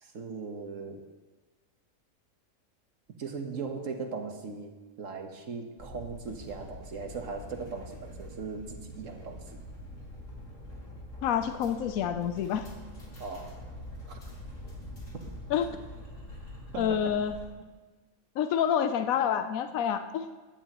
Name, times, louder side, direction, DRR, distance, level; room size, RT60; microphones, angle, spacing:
voice 1, 0.0-1.0 3.2-4.7 5.0-9.4 13.2-13.6 14.1-14.2 16.7-17.2, right 4 dB, 70° right, 4 dB, 1.5 m, -38 dB
sound 1, 5.8-17.5, left 1 dB, 65° left, 3.0 m, -45 dB
voice 2, 11.2-12.7 15.5-15.7 16.8-17.3 18.4-20.3, left 9 dB, 80° left, 8 dB, 1.1 m, -28 dB
15.5 x 11.0 x 3.0 m, 1.3 s
omnidirectional pair, 1.4 m